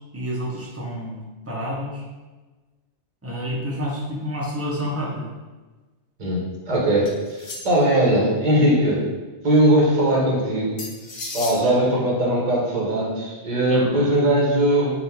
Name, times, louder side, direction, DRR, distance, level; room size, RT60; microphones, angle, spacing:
voice 1, 0.1-2.0 3.2-5.3 11.6-12.0 13.7-14.1, equal, 15° right, -5 dB, 0.7 m, -29 dB
voice 2, 6.2-9.1 9.4-10.8 11.3-14.9, right 1 dB, 40° right, -4 dB, 1.0 m, -20 dB
sound 1, 7.0-8.0 10.8-11.6, left 2 dB, 65° left, 1.0 m, -35 dB
3.6 x 2.5 x 4.3 m, 1.3 s
omnidirectional pair, 1.2 m